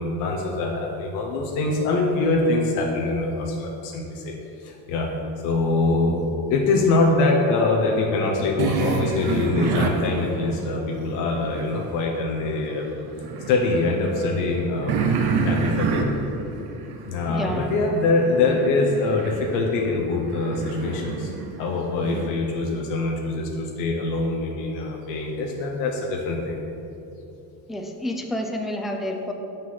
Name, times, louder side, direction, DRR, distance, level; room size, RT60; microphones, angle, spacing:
voice 1, 0.0-5.1 5.4-6.2 6.5-12.9 13.5-15.1 15.4-16.1 17.1-21.3 21.6-26.6, left 3 dB, 85° left, 0 dB, 0.8 m, -24 dB
sound 1, 8.6-11.9 12.3-22.3, right 5 dB, 55° right, 0.8 m, -29 dB
voice 2, 17.3-17.7 27.7-29.3, left 1 dB, ahead, 2 dB, 0.5 m, -29 dB
5.3 x 3.9 x 5.6 m, 2.9 s
supercardioid pair, 80°, 45 cm